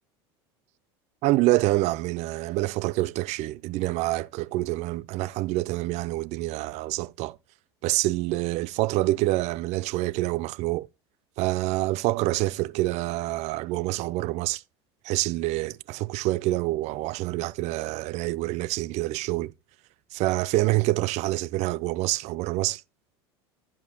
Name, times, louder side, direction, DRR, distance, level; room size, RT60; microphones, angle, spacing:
voice 1, 1.2-7.4 7.8-10.9 11.4-14.6 15.0-19.5 20.1-22.8, right 18 dB, 55° right, 0.4 m, -26 dB
14.0 x 5.2 x 2.9 m
hypercardioid pair, 90°, 14 cm